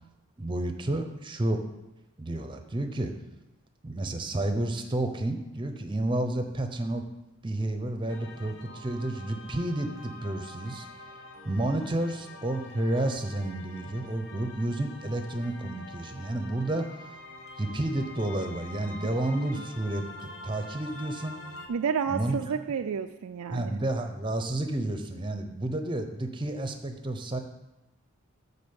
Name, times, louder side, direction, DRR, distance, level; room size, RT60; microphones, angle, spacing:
voice 1, 0.4-1.6 2.2-3.1 3.8-7.1 7.4-10.9 11.4-17.2 17.6-21.4 22.1-22.4 23.5-27.4, right 1 dB, 20° right, 6 dB, 0.7 m, -31 dB
sound 1, 8.1-21.7, left 2 dB, 60° left, 1.1 m, -46 dB
voice 2, 21.7-23.8, right 6 dB, 85° right, 8 dB, 0.4 m, -30 dB
12.0 x 4.1 x 7.0 m, 1.0 s
head